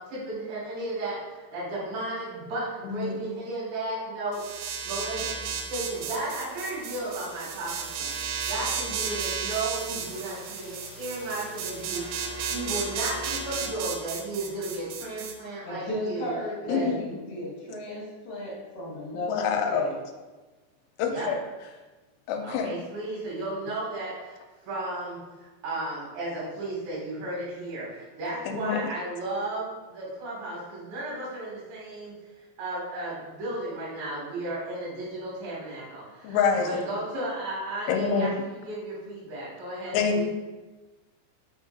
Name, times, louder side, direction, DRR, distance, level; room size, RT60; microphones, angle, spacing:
voice 1, 0.0-12.0 12.5-16.3 16.7-16.9 21.0-21.3 22.4-24.4 24.7-32.1 32.6-40.3, right 2 dB, 65° right, -7 dB, 4.1 m, -34 dB
voice 2, 2.8-3.3 16.7-17.0 19.2-19.9 21.0-21.4 22.3-22.8 28.5-28.9 36.2-36.7 37.9-38.4 39.9-40.3, left 6 dB, 85° left, 4 dB, 3.0 m, -26 dB
sound 1, 4.3-15.3, right 6 dB, 85° right, 2.4 m, -33 dB
sound 2, 5.9-13.7, equal, 45° right, 1.6 m, -44 dB
voice 3, 15.6-20.0, left 1 dB, 55° left, -8 dB, 2.2 m, -34 dB
6.7 x 6.0 x 2.6 m, 1.2 s
omnidirectional pair, 5.6 m